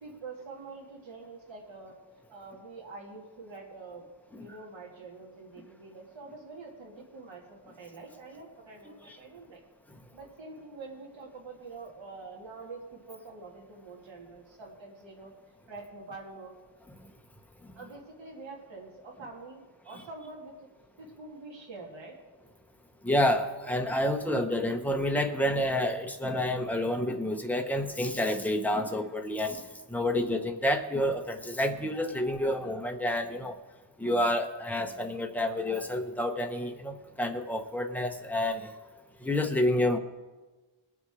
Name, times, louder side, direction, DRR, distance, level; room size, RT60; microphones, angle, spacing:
voice 1, 0.0-2.0 2.3-4.1 4.3-9.6 10.1-15.3 15.7-16.5 17.8-20.7 21.0-22.1, right 3 dB, 85° right, -1 dB, 2.4 m, -46 dB
voice 2, 23.0-29.6 29.9-33.6 34.0-38.7 39.2-40.0, left 1 dB, 5° left, 4 dB, 0.7 m, -29 dB
20.0 x 7.0 x 4.8 m, 1.2 s
wide cardioid pair, 175°, 44 cm